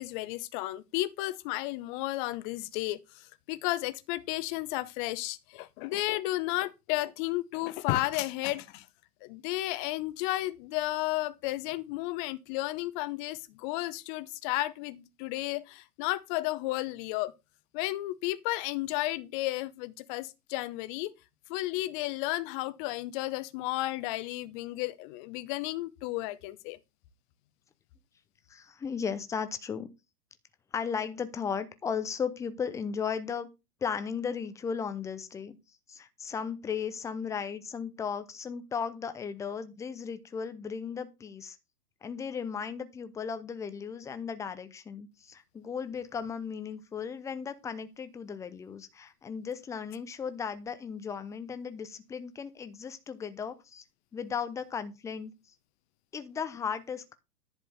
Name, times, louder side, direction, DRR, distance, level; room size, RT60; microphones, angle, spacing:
voice 1, 0.0-8.9 9.2-17.3 17.7-21.1 21.5-26.8, left 17 dB, 30° left, 0.9 m, -33 dB
voice 2, 28.5-29.9 30.7-33.5 33.8-35.6 35.9-41.6 42.0-53.8 54.1-55.3 56.1-57.1, left 6 dB, 5° left, 0.6 m, -36 dB
11.0 x 4.5 x 6.8 m
hypercardioid pair, 120°, 48 cm